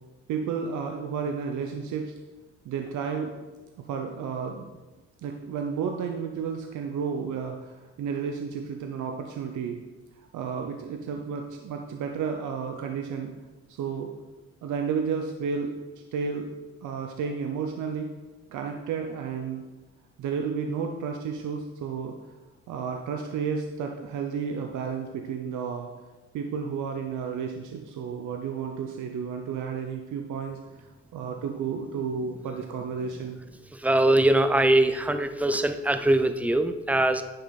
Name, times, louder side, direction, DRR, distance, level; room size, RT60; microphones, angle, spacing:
voice 1, 0.3-2.1 2.6-3.3 3.9-4.7 5.2-9.8 10.3-13.3 13.7-14.1 14.6-15.7 16.1-16.5 16.8-18.1 18.5-19.6 20.2-22.1 22.7-25.9 26.3-33.4, right 6 dB, 75° right, 3 dB, 0.8 m, -32 dB
voice 2, 33.8-37.2, right 1 dB, 5° right, 9 dB, 0.6 m, -22 dB
10.0 x 5.5 x 4.1 m, 1.2 s
cardioid pair, 90°, 30 cm